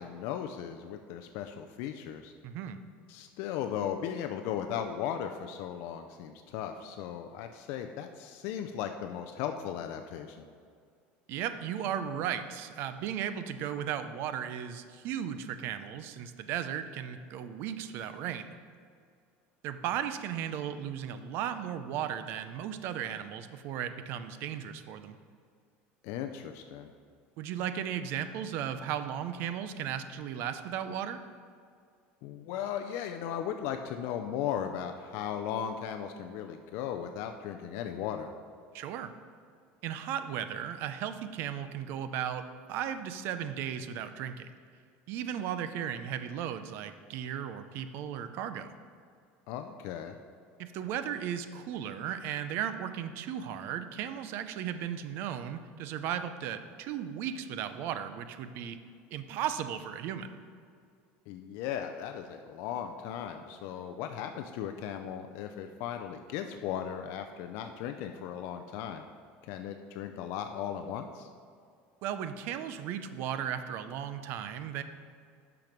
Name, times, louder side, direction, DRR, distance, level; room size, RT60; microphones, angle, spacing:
voice 1, 0.0-2.3 3.1-10.4 26.0-26.9 32.2-38.3 49.5-50.2 61.3-69.0 69.4-71.3, left 9 dB, 50° left, 6 dB, 0.4 m, -37 dB
voice 2, 2.4-2.8 11.3-18.6 19.6-25.2 27.4-31.2 38.7-39.1 39.8-44.5 45.1-48.7 50.6-58.8 59.1-60.4 72.0-74.8, right 9 dB, 45° right, 11 dB, 0.5 m, -36 dB
9.0 x 5.9 x 5.1 m, 2.2 s
cardioid pair, 175°, 5 cm